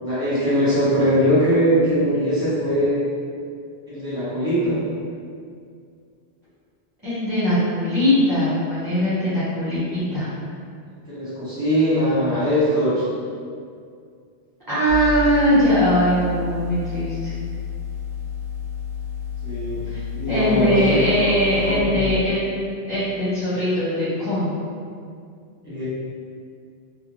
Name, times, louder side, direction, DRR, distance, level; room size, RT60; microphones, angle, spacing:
voice 1, 0.0-3.0 3.9-4.8 11.1-13.0 19.4-19.8 20.1-21.2 21.6-22.1 25.6-25.8, equal, 5° right, -12 dB, 1.1 m, -21 dB
voice 2, 7.0-10.3 14.7-17.3 19.9-20.0 20.3-22.6 22.9-24.5, equal, 20° right, -15 dB, 0.8 m, -21 dB
sound 1, 14.9-21.8, left 6 dB, 55° right, 0.6 m, -31 dB
2.5 x 2.2 x 3.1 m, 2.2 s
omnidirectional pair, 1.1 m